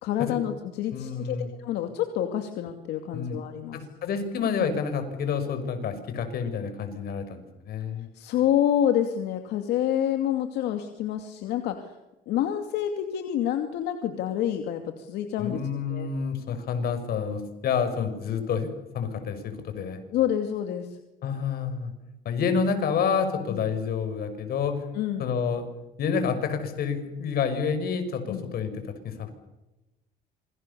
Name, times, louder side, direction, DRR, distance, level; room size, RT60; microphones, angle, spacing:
voice 1, 0.0-3.9 8.1-11.9 12.3-15.6 15.9-16.1 20.1-21.0 23.5-23.6 24.9-25.3 28.3-28.5, left 10 dB, 85° left, 6 dB, 2.5 m, -28 dB
voice 2, 0.9-1.5 3.1-3.4 3.7-8.1 15.4-20.0 21.2-21.9 22.2-24.8 25.2-25.6 26.0-29.3, left 6 dB, 65° left, 9 dB, 6.1 m, -29 dB
27.5 x 24.0 x 7.1 m, 1.0 s
cardioid pair, 110°, 17 cm